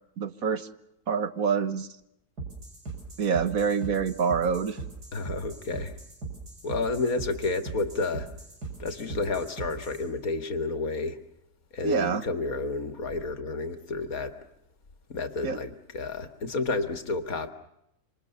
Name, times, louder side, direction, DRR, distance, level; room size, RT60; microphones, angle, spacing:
voice 1, 0.2-0.7 1.1-1.9 3.2-4.8 11.8-12.2 15.4-15.6, right 6 dB, 65° right, 11 dB, 1.7 m, -26 dB
sound 1, 2.4-10.0, right 3 dB, 80° right, 7.2 m, -40 dB
voice 2, 5.1-5.9 6.6-8.3 8.8-11.2 11.7-14.4 15.1-17.5, left 3 dB, 65° left, 8 dB, 2.3 m, -30 dB
27.0 x 26.0 x 6.9 m, 0.82 s
omnidirectional pair, 1.7 m